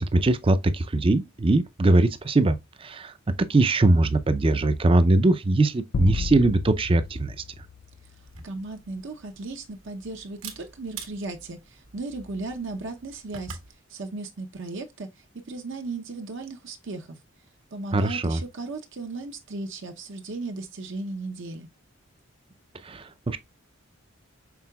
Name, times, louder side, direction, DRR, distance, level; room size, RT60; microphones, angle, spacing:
voice 1, 0.0-7.4 17.9-18.4 22.8-23.4, right 2 dB, 25° right, 0.5 m, -21 dB
sound 1, 5.9-8.5, left 5 dB, 55° left, 0.4 m, -33 dB
Camera, 8.2-13.7, right 5 dB, 85° right, 1.3 m, -46 dB
voice 2, 8.4-13.6 13.9-17.2 17.7-21.7, right 3 dB, 60° right, 0.7 m, -36 dB
6.0 x 3.7 x 2.3 m
head